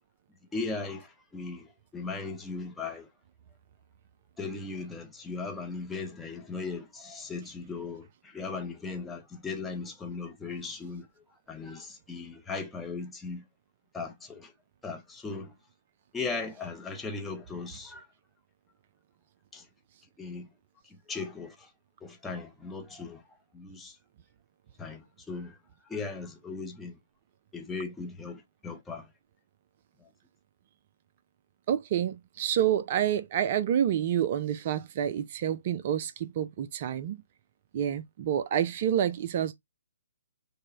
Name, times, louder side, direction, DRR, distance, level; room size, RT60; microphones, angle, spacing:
voice 1, 0.5-1.1 1.3-1.7 1.9-3.1 4.4-11.1 11.5-13.4 13.9-14.5 14.8-15.5 16.1-18.0 19.5-19.6 20.2-20.5 21.1-21.5 22.0-23.2 23.5-23.9 24.8-25.5 25.9-27.0 27.5-29.1, left 4 dB, 5° left, 0.7 m, -37 dB
voice 2, 31.7-37.2 37.7-39.5, right 10 dB, 35° right, 0.3 m, -28 dB
5.3 x 2.1 x 3.6 m
figure-of-eight pair, 130°, 0 cm